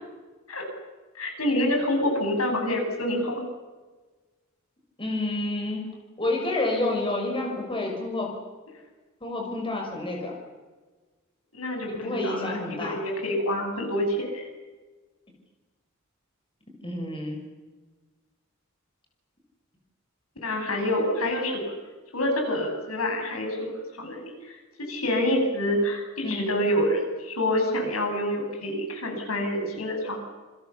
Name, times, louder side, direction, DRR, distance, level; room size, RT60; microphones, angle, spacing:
voice 1, 1.1-3.4 11.5-14.4 20.4-21.7 22.1-30.2, left 1 dB, 80° left, 3 dB, 7.4 m, -27 dB
voice 2, 5.0-8.3 9.2-10.3 11.9-13.0 16.8-17.4 26.2-26.5, left 2 dB, 25° left, 1 dB, 6.3 m, -29 dB
28.0 x 26.5 x 7.2 m, 1.3 s
head